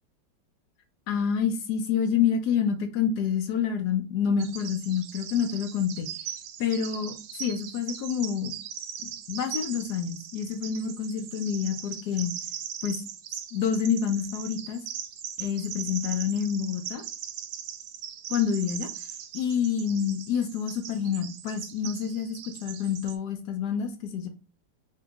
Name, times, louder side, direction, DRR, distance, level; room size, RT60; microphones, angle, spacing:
voice 1, 1.1-6.1 6.6-8.5 9.0-12.4 12.8-13.0 13.5-14.9 15.4-17.0 18.3-18.9 19.3-24.3, left 7 dB, 70° left, 1.0 m, -28 dB
Bird vocalization bird call bird song, 4.4-23.2, right 9 dB, 75° right, 1.1 m, -39 dB
2.9 x 2.8 x 3.4 m
omnidirectional pair, 2.0 m